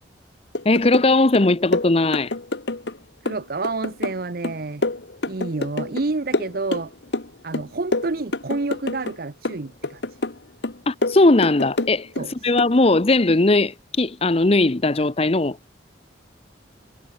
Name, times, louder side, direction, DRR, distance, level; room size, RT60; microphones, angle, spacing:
sound 1, 0.5-1.1 1.3-3.0 3.3-6.1 6.3-7.3 7.5-9.2 9.4-10.4 10.6-12.3 12.6-12.8, left 2 dB, 70° left, 1.4 m, -27 dB
voice 1, 0.6-2.3 10.9-15.6, left 2 dB, 35° left, 0.8 m, -18 dB
voice 2, 3.2-4.9 5.3-6.9 7.4-10.2 12.2-12.5, right 3 dB, 55° right, 0.8 m, -29 dB
head